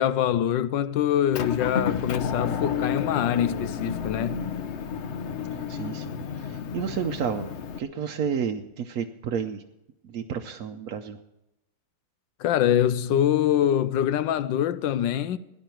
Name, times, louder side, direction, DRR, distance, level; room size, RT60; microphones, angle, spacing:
voice 1, 0.0-4.5 12.4-15.4, left 10 dB, 80° left, 1.4 m, -24 dB
Motor vehicle (road) / Engine, 1.3-7.8, left 7 dB, 60° left, 0.7 m, -31 dB
voice 2, 5.7-9.6 10.0-11.2, right 7 dB, 60° right, 1.1 m, -31 dB
18.0 x 11.0 x 4.5 m
omnidirectional pair, 2.0 m